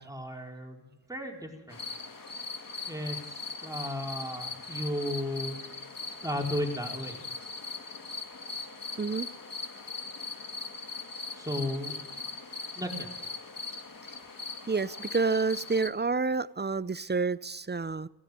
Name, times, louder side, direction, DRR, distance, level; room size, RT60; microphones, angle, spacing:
voice 1, 0.0-1.8 2.9-5.5 6.1-7.2 11.3-11.9 12.7-13.1, left 1 dB, 10° right, 4.6 m, -35 dB
sound 1, 1.7-15.9, left 4 dB, 55° left, 2.2 m, -40 dB
voice 2, 14.7-18.1, right 4 dB, 25° right, 0.6 m, -29 dB
17.5 x 16.0 x 5.2 m
cardioid pair, 45°, 39 cm